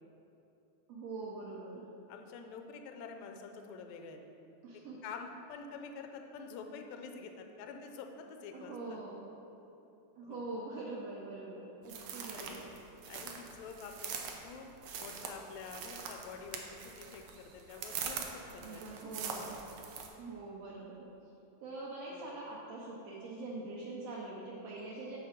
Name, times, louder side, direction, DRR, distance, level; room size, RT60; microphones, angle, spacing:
voice 1, 0.9-1.9 4.6-5.0 8.5-9.2 10.2-12.7 18.6-19.6 20.2-21.1 21.6-25.2, right 2 dB, 70° right, -4 dB, 1.6 m, -44 dB
voice 2, 2.1-4.2 5.0-9.0 10.2-10.4 12.3-12.6 13.1-14.2 14.4-16.6 17.0-18.8 22.1-22.4, left 5 dB, 80° left, 4 dB, 1.7 m, -47 dB
sound 1, 11.9-20.1, right 6 dB, 90° right, 1.4 m, -43 dB
7.0 x 6.7 x 5.1 m, 3.0 s
omnidirectional pair, 3.7 m